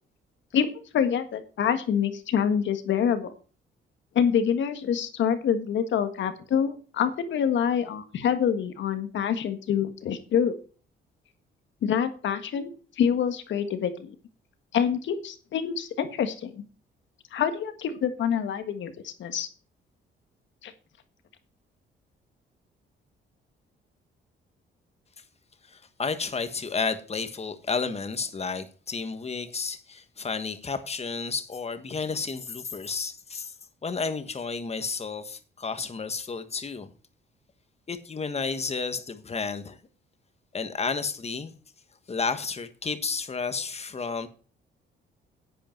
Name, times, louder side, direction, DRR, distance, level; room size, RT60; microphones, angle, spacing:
voice 1, 0.9-3.3 4.1-10.5 11.8-14.1 14.7-16.6 17.3-19.5 20.6-20.7, left 8 dB, 70° left, 1.6 m, -26 dB
voice 2, 25.7-33.5 33.8-36.9 37.9-39.8 40.5-41.5 42.1-44.3, left 4 dB, 30° left, 1.5 m, -31 dB
11.0 x 8.5 x 4.5 m
cardioid pair, 90°, 20 cm